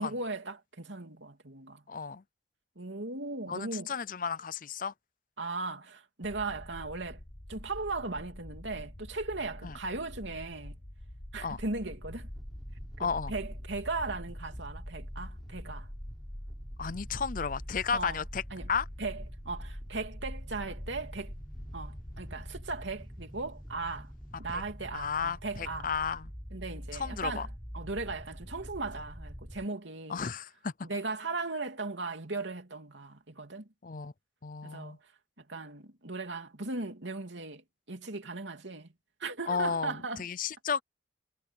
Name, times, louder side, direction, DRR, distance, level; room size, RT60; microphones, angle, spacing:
voice 1, 0.0-1.8 2.8-3.9 5.4-7.2 7.5-10.8 11.3-12.3 13.0-15.9 17.9-18.2 18.5-18.7 19.0-21.3 21.7-24.1 24.4-25.9 26.5-27.5 27.7-30.2 30.8-33.7 34.6-35.0 35.4-37.6 37.9-38.9 39.2-40.3, right 3 dB, 80° right, 3.0 m, -37 dB
voice 2, 1.9-2.2 3.5-4.9 9.6-9.8 11.4-11.6 13.0-13.3 16.8-18.4 18.7-18.8 24.5-24.6 24.9-26.3 26.9-27.5 30.1-30.7 33.8-34.1 34.4-35.0 39.5-40.8, left 6 dB, 45° left, 0.6 m, -33 dB
sound 1, 6.2-22.7, left 1 dB, 30° left, 1.5 m, -47 dB
sound 2, 12.0-29.7, equal, ahead, 5.9 m, -45 dB
head